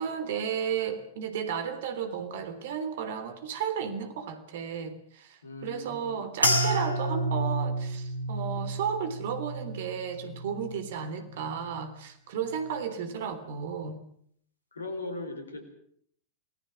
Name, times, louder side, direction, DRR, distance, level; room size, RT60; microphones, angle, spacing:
voice 1, 0.0-14.0, right 7 dB, 55° right, 10 dB, 3.3 m, -33 dB
voice 2, 5.4-6.3 13.0-13.4 14.7-15.6, left 2 dB, 75° left, 9 dB, 4.7 m, -39 dB
sound 1, 6.4-11.0 11.3-11.9 12.5-12.8, right 1 dB, 90° right, 3.7 m, -31 dB
28.0 x 19.5 x 6.2 m, 0.64 s
figure-of-eight pair, 90°, 0 cm